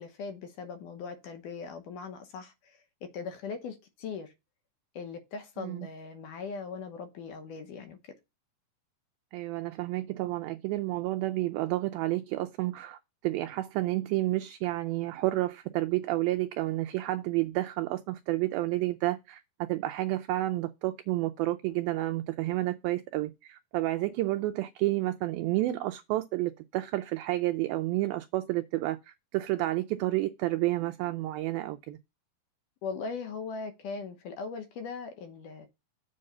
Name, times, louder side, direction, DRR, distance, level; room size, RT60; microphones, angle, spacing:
voice 1, 0.0-4.3 5.0-8.1 32.8-35.7, left 5 dB, 70° left, 2.1 m, -40 dB
voice 2, 9.3-13.0 13.2-19.4 19.7-29.0 29.3-32.0, right 17 dB, 85° right, 2.1 m, -30 dB
7.6 x 3.9 x 6.6 m
omnidirectional pair, 4.7 m